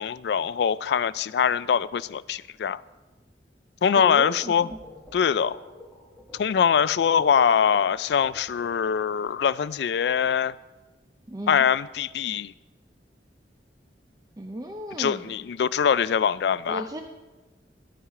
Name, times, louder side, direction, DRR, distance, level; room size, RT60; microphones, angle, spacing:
voice 1, 0.0-2.8 3.8-4.7 5.1-5.6 6.3-10.5 11.5-12.5 15.0-16.8, left 7 dB, 70° left, 0.3 m, -23 dB
voice 2, 4.0-4.8 11.3-11.7 14.4-15.4 16.7-17.0, right 1 dB, 20° right, 0.6 m, -35 dB
sound 1, 4.7-9.1, left 2 dB, 5° left, 1.6 m, -48 dB
11.0 x 10.0 x 4.8 m
head